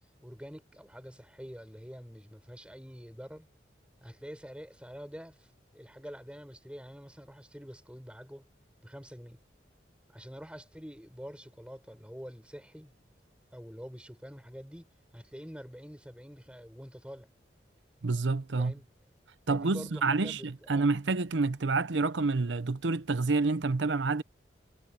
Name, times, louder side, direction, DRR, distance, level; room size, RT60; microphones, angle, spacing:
voice 1, 0.2-3.5 4.0-8.5 8.8-9.4 10.1-12.9 13.5-17.3 18.6-18.9 19.5-20.9, equal, 5° right, 6.3 m, -46 dB
voice 2, 18.0-18.7 19.5-24.2, right 3 dB, 85° right, 0.7 m, -28 dB
head